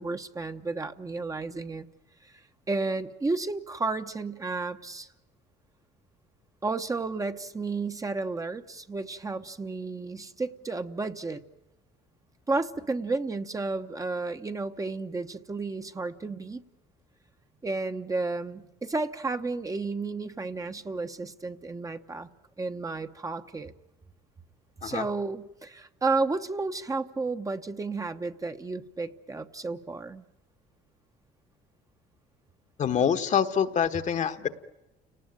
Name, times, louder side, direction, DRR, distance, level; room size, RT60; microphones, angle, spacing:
voice 1, 0.0-1.9 2.2-2.3 2.7-5.1 6.6-11.4 12.5-16.6 17.6-22.3 22.6-23.7 24.8-30.2, right 3 dB, 20° right, 7 dB, 1.0 m, -32 dB
voice 2, 32.8-34.5, left 8 dB, 45° left, 10 dB, 1.2 m, -25 dB
29.5 x 19.0 x 9.0 m, 1.0 s
cardioid pair, 110°, 17 cm